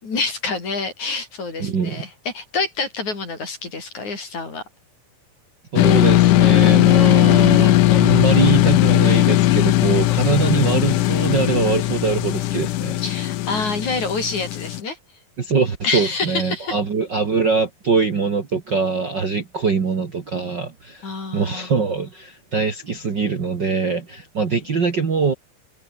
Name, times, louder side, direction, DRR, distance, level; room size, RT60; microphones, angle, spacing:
voice 1, 0.0-4.6 13.0-15.0 15.8-16.8 21.0-21.7, left 4 dB, 55° left, 7.6 m, -27 dB
voice 2, 1.6-2.0 5.7-13.0 15.4-25.3, right 5 dB, 35° right, 2.1 m, -23 dB
sound 1, 5.8-14.8, left 15 dB, 70° left, 2.2 m, -17 dB
omnidirectional pair, 4.1 m